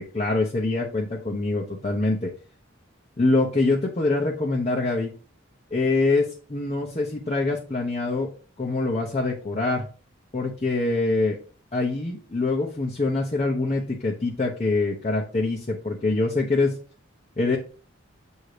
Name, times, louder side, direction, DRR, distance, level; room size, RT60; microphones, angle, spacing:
voice 1, 0.0-2.3 3.2-5.1 5.7-8.3 8.6-9.9 10.3-11.4 11.7-16.8 17.4-17.6, left 3 dB, 35° left, -3 dB, 0.8 m, -24 dB
7.7 x 2.7 x 4.8 m, 0.39 s
head